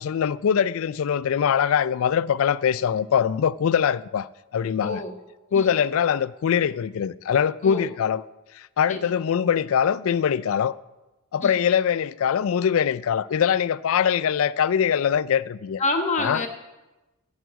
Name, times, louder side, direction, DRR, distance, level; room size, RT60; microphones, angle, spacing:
voice 1, 0.0-5.0 5.5-8.2 8.5-10.8 11.3-15.8 16.2-16.4, left 8 dB, 65° left, 0.3 m, -23 dB
voice 2, 4.8-5.2 5.5-5.8 7.6-7.9 8.9-9.1 11.4-11.6 15.8-16.5, left 2 dB, 30° left, 1.2 m, -28 dB
9.3 x 7.4 x 8.0 m
head